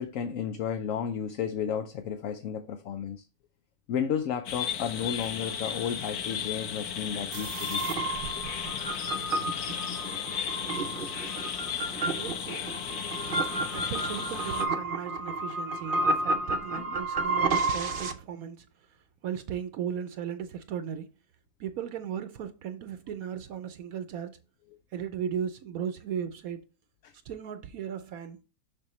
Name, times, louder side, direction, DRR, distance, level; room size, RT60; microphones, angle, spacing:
voice 1, 0.0-3.2 3.9-7.9 8.4-8.5 13.5-13.6 16.7-17.0 27.0-27.1, left 8 dB, 65° left, 1.0 m, -33 dB
sound 1, 4.5-14.7, left 8 dB, 90° left, 1.4 m, -35 dB
sound 2, 7.3-18.1, right 3 dB, 50° right, 0.7 m, -31 dB
voice 2, 12.1-12.7 13.7-18.7 19.2-21.1 21.6-24.4 24.9-26.6 27.3-28.4, right 8 dB, 75° right, 1.1 m, -36 dB
6.5 x 6.1 x 3.1 m
omnidirectional pair, 1.6 m